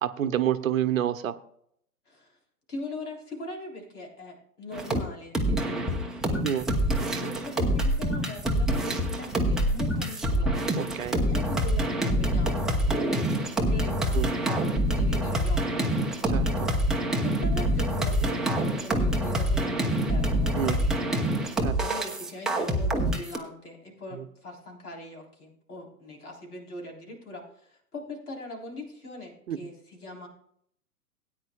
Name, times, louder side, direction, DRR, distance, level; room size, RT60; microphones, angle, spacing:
voice 1, 0.0-1.3 6.4-6.7 7.2-7.4 10.8-11.2 14.1-14.3 16.3-16.7 20.6-20.8 21.6-21.8 24.1-24.2 29.5-29.6, right 10 dB, 60° right, 12 dB, 0.9 m, -28 dB
voice 2, 2.7-6.6 7.2-10.7 11.3-14.6 14.9-16.3 17.2-21.2 21.8-30.3, left 1 dB, 70° left, 1 dB, 3.8 m, -41 dB
sound 1, 4.7-5.0 5.3-23.4, equal, ahead, 0.6 m, -26 dB
17.5 x 9.3 x 2.3 m, 0.67 s
figure-of-eight pair, 110°, 46 cm